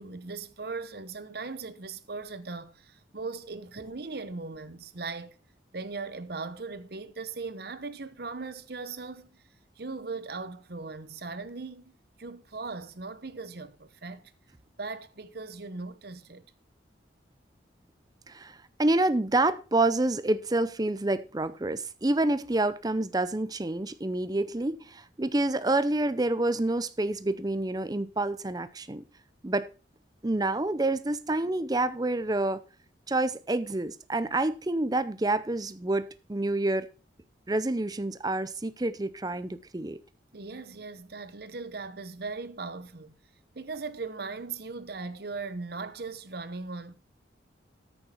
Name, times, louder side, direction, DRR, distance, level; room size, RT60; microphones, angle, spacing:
voice 1, 0.0-5.4 5.7-9.4 9.8-14.3 14.8-16.4 40.3-43.2 43.5-46.9, right 4 dB, 55° right, 1.0 m, -39 dB
voice 2, 18.3-29.0 29.4-29.7 30.2-32.6 33.1-36.9 37.5-40.0, right 2 dB, 20° right, 0.6 m, -28 dB
13.5 x 6.5 x 4.4 m
head